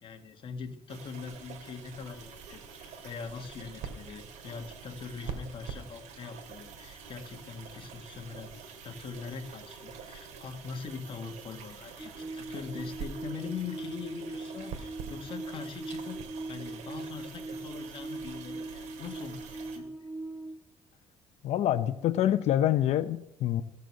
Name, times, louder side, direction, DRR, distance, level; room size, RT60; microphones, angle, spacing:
voice 1, 0.0-8.5 8.8-16.2 16.5-19.9, left 5 dB, 45° left, 6 dB, 1.6 m, -42 dB
sound 1, 0.9-19.8, right 6 dB, 75° right, 2.2 m, -46 dB
sound 2, 12.0-20.5, right 2 dB, 10° right, 0.9 m, -40 dB
voice 2, 21.4-23.6, left 12 dB, 65° left, 12 dB, 0.7 m, -26 dB
15.0 x 6.7 x 7.7 m, 0.80 s
cardioid pair, 125°, 12 cm